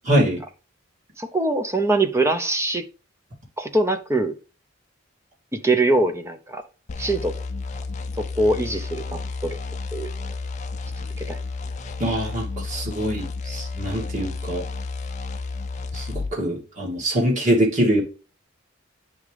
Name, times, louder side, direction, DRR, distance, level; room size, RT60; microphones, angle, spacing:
voice 1, 0.0-0.4 12.0-14.6 15.9-18.0, equal, 35° right, 2.4 m, -23 dB
voice 2, 1.2-2.8 3.6-4.3 5.5-6.6 7.0-7.3 8.2-9.6 9.9-10.3 11.0-11.4, right 2 dB, 15° right, 0.6 m, -23 dB
sound 1, 6.9-16.3, left 3 dB, 35° left, 0.5 m, -32 dB
9.6 x 3.6 x 3.4 m
head